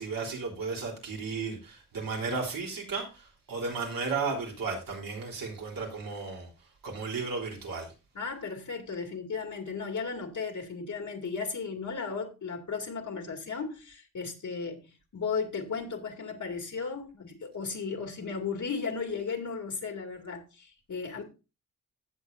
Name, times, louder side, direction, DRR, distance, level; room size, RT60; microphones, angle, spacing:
voice 1, 0.0-6.5 6.8-7.9, right 4 dB, 70° right, 3.7 m, -34 dB
voice 2, 8.1-21.2, left 5 dB, 60° left, 2.3 m, -35 dB
16.0 x 7.3 x 2.7 m
wide cardioid pair, 110°, 34 cm